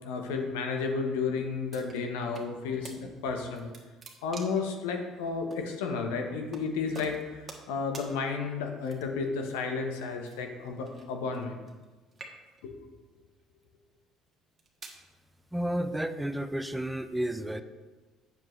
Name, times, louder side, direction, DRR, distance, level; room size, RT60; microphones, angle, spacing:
voice 1, 0.0-3.7 4.2-11.5 12.6-12.7, left 4 dB, 80° left, 3 dB, 0.9 m, -32 dB
sound 1, 1.7-2.5 2.8-3.0 3.4-4.7 5.5-5.6 6.5-6.7 6.9-7.7 7.9-8.1 8.8-9.3 10.2-11.9 12.1-12.7 13.4-13.6 14.3-15.0, right 3 dB, 35° right, 1.4 m, -47 dB
voice 2, 15.5-17.6, right 1 dB, 10° right, 10 dB, 0.5 m, -31 dB
7.8 x 7.0 x 3.2 m, 1.3 s
hypercardioid pair, 60°, 0 cm